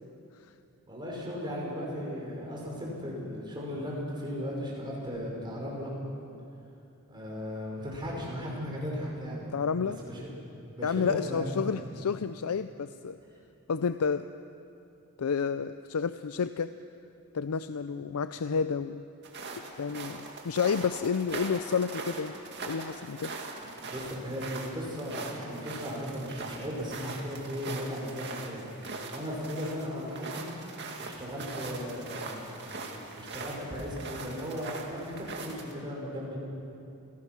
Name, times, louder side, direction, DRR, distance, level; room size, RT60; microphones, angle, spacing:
voice 1, 0.9-5.9 7.1-9.5 9.8-10.3 10.8-11.6 23.6-28.7 29.1-30.4 31.0-32.6 33.2-36.4, equal, 20° right, -3 dB, 5.4 m, -36 dB
voice 2, 9.5-10.0 10.8-13.2 13.7-14.3 15.2-16.7 17.3-19.0 19.8-22.3 22.6-23.3, left 6 dB, 85° left, 12 dB, 0.5 m, -30 dB
sound 1, 19.2-35.7, right 3 dB, 50° right, 2.3 m, -41 dB
28.0 x 17.5 x 6.1 m, 2.7 s
head